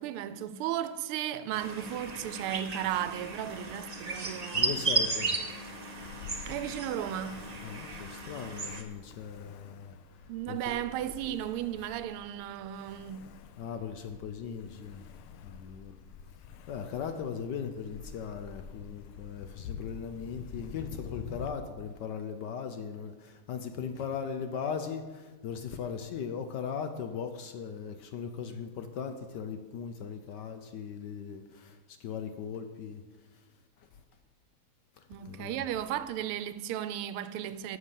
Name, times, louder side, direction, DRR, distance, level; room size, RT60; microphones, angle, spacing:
voice 1, 0.0-4.7 6.5-7.4 10.3-13.2 35.1-37.8, right 11 dB, 90° right, 1.5 m, -35 dB
sound 1, 1.5-8.8, right 3 dB, 60° right, 0.4 m, -34 dB
voice 2, 4.5-5.4 7.6-9.9 10.5-10.8 13.6-15.0 15.4-15.9 16.7-33.0 35.2-35.6, left 7 dB, 70° left, 1.1 m, -38 dB
Ocean, 6.0-21.5, left 7 dB, 85° left, 1.5 m, -48 dB
9.4 x 6.5 x 7.4 m
omnidirectional pair, 2.3 m